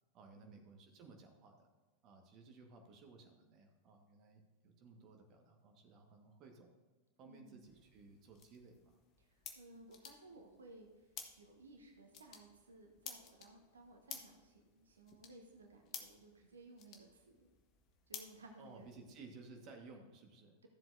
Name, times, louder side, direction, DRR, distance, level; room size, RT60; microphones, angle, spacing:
voice 1, 0.1-1.7 2.0-6.7 7.2-9.0 18.6-20.6, right 3 dB, 35° right, 2 dB, 1.5 m, -58 dB
voice 2, 7.2-7.7 9.2-17.5 18.1-18.9, right 2 dB, 70° right, 3 dB, 1.2 m, -59 dB
sound 1, 7.6-19.1, left 7 dB, 35° left, 1.3 m, -55 dB
14.0 x 7.6 x 2.7 m, 1.3 s
figure-of-eight pair, 90°, 0 cm